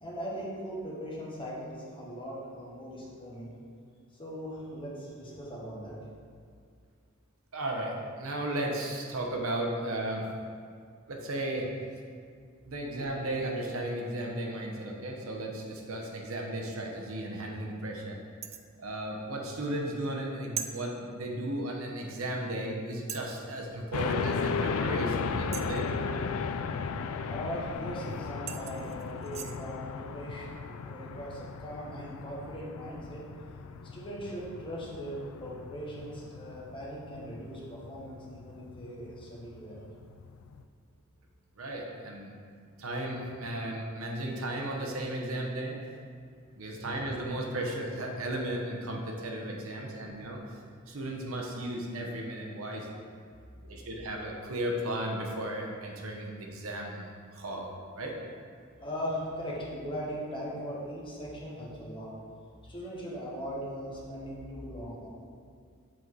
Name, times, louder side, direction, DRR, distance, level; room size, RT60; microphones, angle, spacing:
voice 1, 0.0-3.5 4.2-6.0 27.3-33.2 33.9-39.9 58.8-62.1 62.6-65.1, equal, 25° left, -5 dB, 1.4 m, -39 dB
voice 2, 7.5-10.2 11.1-11.7 12.7-18.2 18.8-25.8 41.6-42.3 42.8-45.8 46.6-50.6 50.9-53.0 53.6-57.1 57.3-58.2, right 1 dB, 75° right, 0 dB, 1.0 m, -35 dB
sound 1, 18.4-18.7 20.6-20.7 22.2-22.3 23.1-23.4 25.5-25.9 27.9-28.0 28.5-29.6, right 8 dB, 30° right, 0.3 m, -39 dB
sound 2, 23.9-40.6, left 5 dB, 75° left, 0.4 m, -36 dB
7.5 x 4.1 x 4.6 m, 2.1 s
head